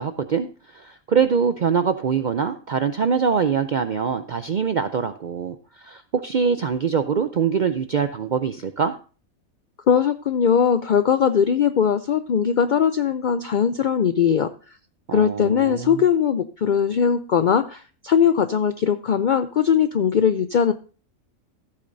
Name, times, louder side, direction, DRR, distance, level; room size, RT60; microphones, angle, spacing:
voice 1, 0.0-8.9 15.1-16.0, right 6 dB, 65° right, 9 dB, 0.4 m, -23 dB
voice 2, 9.9-14.5 15.1-20.7, left 7 dB, 75° left, 10 dB, 0.4 m, -20 dB
14.5 x 8.5 x 2.6 m, 0.37 s
omnidirectional pair, 1.4 m